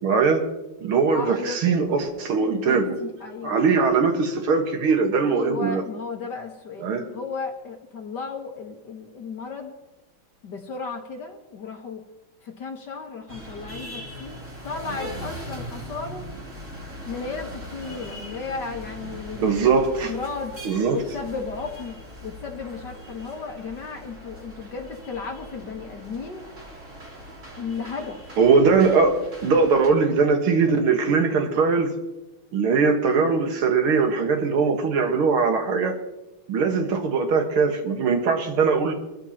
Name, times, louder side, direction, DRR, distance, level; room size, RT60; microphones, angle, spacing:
voice 1, 0.0-0.5 0.8-2.9 3.4-5.8 6.8-7.0 19.4-20.2 20.6-21.0 28.4-31.9 32.5-36.0 36.5-38.9, right 5 dB, 85° right, 4 dB, 2.4 m, -21 dB
voice 2, 1.1-1.6 2.4-3.9 5.3-9.7 10.4-12.0 12.4-16.3 17.1-19.5 20.1-20.5 20.9-22.0 22.2-26.5 27.6-28.2, left 4 dB, 55° left, 2 dB, 1.9 m, -34 dB
sound 1, 13.3-29.9, equal, 35° right, 3.7 m, -40 dB
23.5 x 13.5 x 2.9 m, 1.0 s
omnidirectional pair, 2.3 m